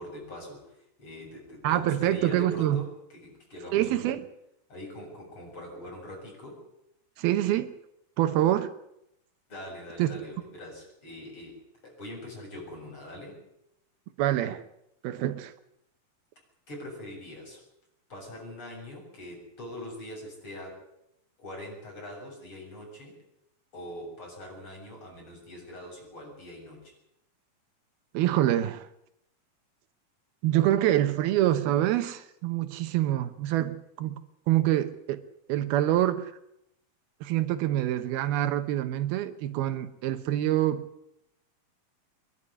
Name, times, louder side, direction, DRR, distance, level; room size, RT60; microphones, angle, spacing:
voice 1, 0.0-4.2 4.7-6.6 9.5-13.4 16.7-17.6 18.1-20.8 21.4-23.2 23.7-26.9, left 1 dB, 35° left, -1 dB, 8.0 m, -42 dB
voice 2, 1.6-2.8 3.7-4.2 7.2-7.7 8.2-8.7 10.0-10.1 14.2-14.6 15.0-15.5 28.1-28.9 30.4-35.2 35.5-36.3 37.2-40.8, right 13 dB, 80° right, 10 dB, 2.9 m, -26 dB
25.0 x 11.5 x 9.9 m, 0.82 s
omnidirectional pair, 4.4 m